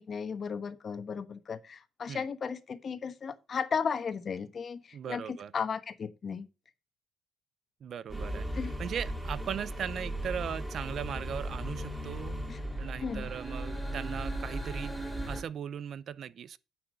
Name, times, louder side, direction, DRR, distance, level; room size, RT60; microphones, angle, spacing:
voice 1, 0.0-6.5 8.5-8.7 12.5-12.6 13.0-13.3, left 6 dB, 40° left, 1.2 m, -35 dB
voice 2, 4.9-5.5 7.8-8.5 8.8-12.4 12.8-16.6, right 8 dB, 55° right, 0.6 m, -38 dB
sound 1, 8.1-15.4, right 1 dB, 10° right, 3.0 m, -36 dB
9.4 x 6.1 x 5.0 m
cardioid pair, 105°, 0 cm